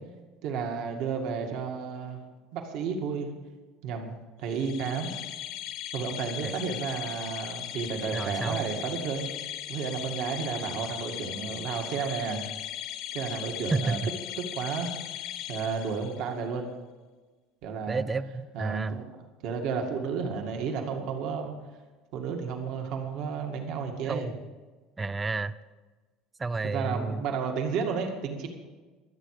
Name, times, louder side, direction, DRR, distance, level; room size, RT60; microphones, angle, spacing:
voice 1, 0.4-2.2 2.5-3.3 3.8-5.1 5.9-9.3 9.7-12.4 13.1-14.0 14.4-14.9 15.5-16.7 17.6-18.0 18.5-21.5 22.1-24.3 26.6-28.5, right 5 dB, 55° right, 3 dB, 2.1 m, -32 dB
sound 1, 4.5-16.3, left 12 dB, 55° left, 1.4 m, -38 dB
voice 2, 8.1-8.7 13.7-14.0 17.9-19.0 24.1-24.3 25.0-25.5 26.4-27.2, right 3 dB, 15° right, 16 dB, 0.4 m, -30 dB
24.0 x 8.9 x 4.9 m, 1.3 s
cardioid pair, 165°, 0 cm